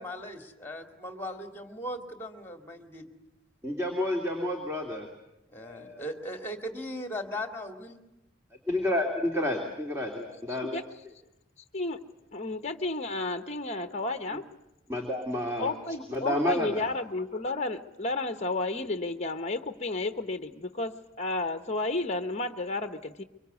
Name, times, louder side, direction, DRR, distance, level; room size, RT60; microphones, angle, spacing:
voice 1, 0.0-3.1 5.5-8.0, equal, 10° left, 5 dB, 2.3 m, -38 dB
voice 2, 3.6-5.1 5.6-6.0 8.7-10.8 14.9-15.7 16.1-16.9, left 1 dB, 15° right, 1 dB, 2.6 m, -30 dB
voice 3, 12.3-14.4 15.6-23.2, left 2 dB, 35° left, 8 dB, 1.0 m, -32 dB
24.0 x 24.0 x 8.2 m, 0.90 s
head